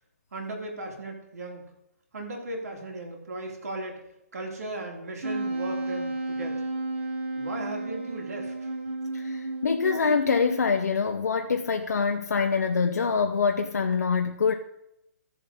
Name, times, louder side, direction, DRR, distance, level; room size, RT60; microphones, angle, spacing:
voice 1, 0.3-1.7 2.1-4.0 4.3-6.6 7.3-8.7, right 2 dB, 65° right, 1 dB, 3.2 m, -37 dB
Wind instrument woodwind instrument, 5.2-10.9, right 2 dB, 45° right, 2.2 m, -33 dB
voice 2, 9.1-14.5, left 5 dB, 80° left, 4 dB, 0.8 m, -25 dB
14.5 x 7.0 x 4.3 m, 0.84 s
hypercardioid pair, 175°, 9 cm